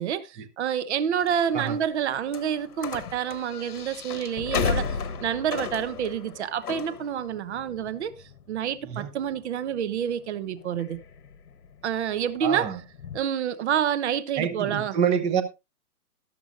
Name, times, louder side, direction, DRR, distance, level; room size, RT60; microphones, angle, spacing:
voice 1, 0.0-8.1 8.5-11.0 11.8-12.7 13.1-15.0, right 9 dB, 45° right, 1.1 m, -28 dB
sound 1, 1.2-13.2, left 6 dB, 75° left, 1.3 m, -35 dB
voice 2, 12.4-12.8 14.4-15.4, right 7 dB, 15° right, 0.8 m, -26 dB
13.5 x 12.0 x 2.5 m
hypercardioid pair, 130°, 46 cm